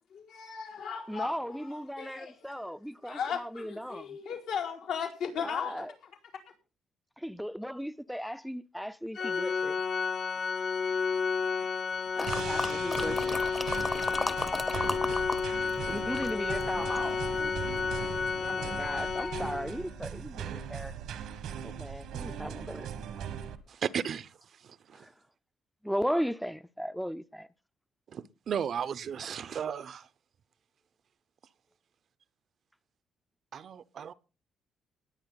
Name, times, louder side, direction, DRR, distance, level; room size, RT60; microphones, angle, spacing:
voice 1, 0.1-2.5 3.1-5.9, left 7 dB, 85° left, 4.6 m, -37 dB
voice 2, 1.1-4.2 5.4-5.9 7.2-9.8 12.2-13.4 15.9-17.2 18.4-20.9 21.6-22.9 24.9-25.1 25.8-27.5, equal, ahead, 0.5 m, -36 dB
Organ, 9.1-19.9, left 5 dB, 50° left, 0.9 m, -31 dB
sound 1, 12.2-15.4 15.7-17.1 17.7-17.8, left 2 dB, 20° left, 0.9 m, -34 dB
sound 2, 12.3-23.6, right 8 dB, 85° right, 1.4 m, -40 dB
voice 3, 23.7-24.4 24.6-25.1 28.1-30.1 33.5-34.1, right 8 dB, 60° right, 0.7 m, -35 dB
20.0 x 8.6 x 4.0 m
cardioid pair, 90°, 0 cm